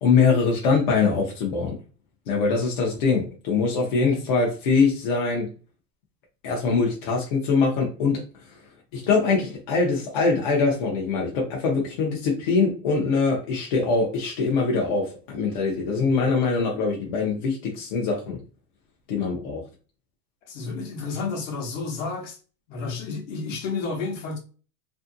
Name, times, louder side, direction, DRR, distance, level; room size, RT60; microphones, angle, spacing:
voice 1, 0.0-1.8 2.3-5.5 6.4-8.2 8.9-18.4 19.1-19.6, left 4 dB, 35° left, 0.4 m, -23 dB
voice 2, 20.5-22.4 22.7-24.4, left 4 dB, 55° left, 0.9 m, -31 dB
2.6 x 2.5 x 2.4 m
supercardioid pair, 165°, 47 cm